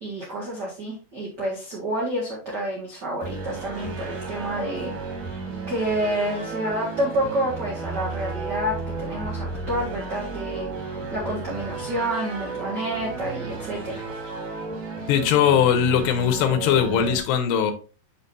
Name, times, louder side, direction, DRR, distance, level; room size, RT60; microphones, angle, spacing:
voice 1, 0.0-4.9 5.7-14.0, right 1 dB, 85° right, 0.9 m, -29 dB
sound 1, 3.2-17.2, right 3 dB, 55° right, 2.7 m, -33 dB
voice 2, 15.1-17.7, left 8 dB, 80° left, 3.0 m, -20 dB
7.1 x 6.1 x 2.7 m
omnidirectional pair, 5.0 m